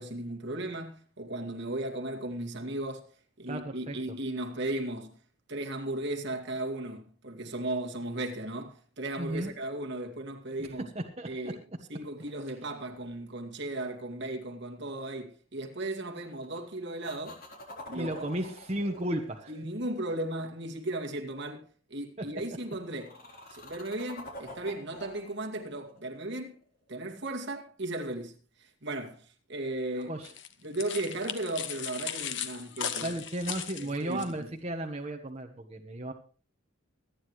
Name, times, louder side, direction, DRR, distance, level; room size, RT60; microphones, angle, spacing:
voice 1, 0.0-3.1 3.4-5.2 5.5-10.9 11.3-11.6 11.9-17.4 17.9-18.1 18.4-18.5 19.5-23.2 23.5-26.6 26.9-30.1 30.6-33.2 33.8-34.3, right 1 dB, 55° right, 2.2 m, -36 dB
voice 2, 3.5-4.0 9.2-9.5 10.9-11.5 17.9-19.5 23.5-23.6 30.0-30.3 33.0-36.1, right 1 dB, 30° right, 1.2 m, -34 dB
sound 1, 12.2-13.4 16.1-16.6 17.0-20.3 22.5-26.9 30.6-30.7, left 1 dB, 45° left, 3.9 m, -48 dB
sound 2, 30.2-34.3, left 8 dB, 60° left, 1.1 m, -37 dB
26.0 x 9.7 x 3.2 m
head